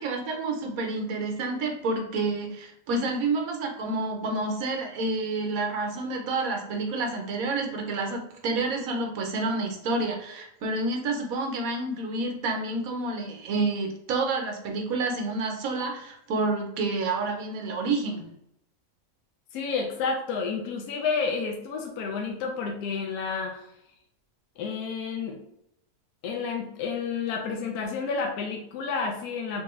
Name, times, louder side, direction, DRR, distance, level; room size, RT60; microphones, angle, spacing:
voice 1, 0.0-18.3, right 3 dB, 70° right, 2 dB, 1.0 m, -29 dB
voice 2, 19.5-23.7 24.6-25.4 26.2-29.6, left 5 dB, 75° left, 2 dB, 1.1 m, -30 dB
3.6 x 2.6 x 3.0 m, 0.80 s
omnidirectional pair, 1.7 m